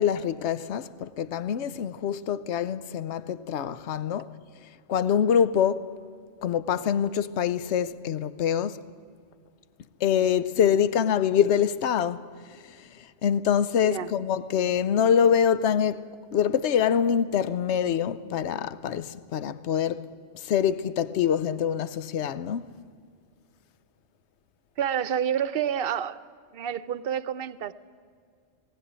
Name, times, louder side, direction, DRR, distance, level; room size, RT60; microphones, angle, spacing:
voice 1, 0.0-4.4 4.9-6.0 6.4-8.8 10.0-12.3 12.6-16.1 16.3-20.1 20.3-22.7, left 8 dB, 75° left, 1.0 m, -25 dB
voice 2, 24.8-26.2 26.5-27.7, right 9 dB, 60° right, 0.9 m, -28 dB
19.0 x 17.0 x 10.0 m
omnidirectional pair, 1.2 m